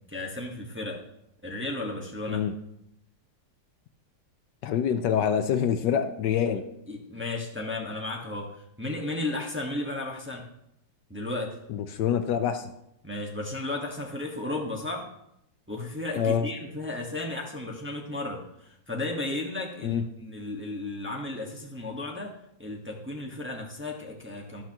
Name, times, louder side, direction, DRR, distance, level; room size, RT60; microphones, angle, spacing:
voice 1, 0.1-1.0 1.4-2.4 6.9-10.4 11.1-11.6 13.0-15.1 15.7-24.6, left 2 dB, 5° right, -1 dB, 1.1 m, -34 dB
voice 2, 4.6-6.6 11.7-12.7 16.2-16.5 19.8-20.0, left 8 dB, 70° left, 9 dB, 1.3 m, -26 dB
12.5 x 11.5 x 3.0 m, 0.78 s
omnidirectional pair, 2.0 m